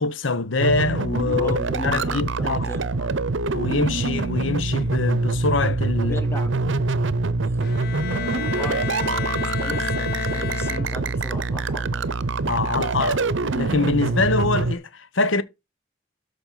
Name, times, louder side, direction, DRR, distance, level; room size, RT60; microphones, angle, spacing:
voice 1, 0.0-2.6 3.5-6.2 12.4-13.2 13.5-15.4, left 3 dB, 75° left, 1.0 m, -24 dB
sound 1, 0.6-14.7, right 3 dB, 70° right, 0.7 m, -25 dB
voice 2, 1.4-3.1 6.0-6.9 7.4-12.1, left 1 dB, 15° left, 1.3 m, -37 dB
Bowed string instrument, 7.6-11.3, left 8 dB, 50° left, 0.4 m, -31 dB
13.0 x 5.4 x 4.1 m
head